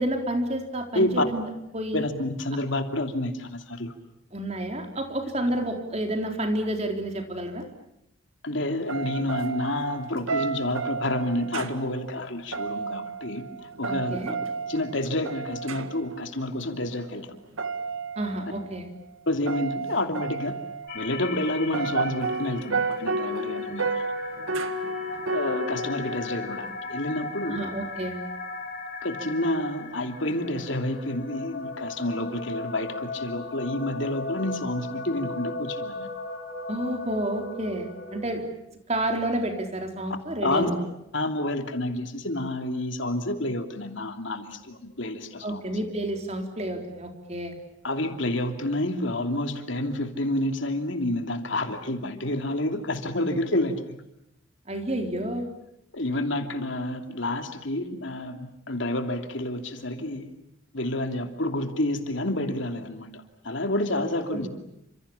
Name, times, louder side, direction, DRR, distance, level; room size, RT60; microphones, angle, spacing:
voice 1, 0.0-1.4 1.7-2.1 4.3-7.6 13.8-14.3 18.2-18.9 27.4-28.2 36.7-38.5 38.9-40.7 45.4-47.5 54.7-55.5 64.3-64.5, right 1 dB, 35° right, 4 dB, 4.0 m, -30 dB
voice 2, 0.9-1.3 1.9-3.9 8.4-13.5 13.8-14.4 14.7-17.3 19.3-20.6 20.9-24.0 25.3-27.6 29.0-36.1 40.4-40.7 41.1-45.6 47.8-54.0 55.9-60.3 60.7-64.5, left 1 dB, 70° left, 6 dB, 2.9 m, -29 dB
sound 1, 8.9-16.2 17.6-18.7 19.4-21.1 21.6-26.7, right 3 dB, 90° right, 1.9 m, -32 dB
sound 2, 20.9-38.2, left 3 dB, 45° left, 5.1 m, -37 dB
30.0 x 27.0 x 7.2 m, 0.81 s
head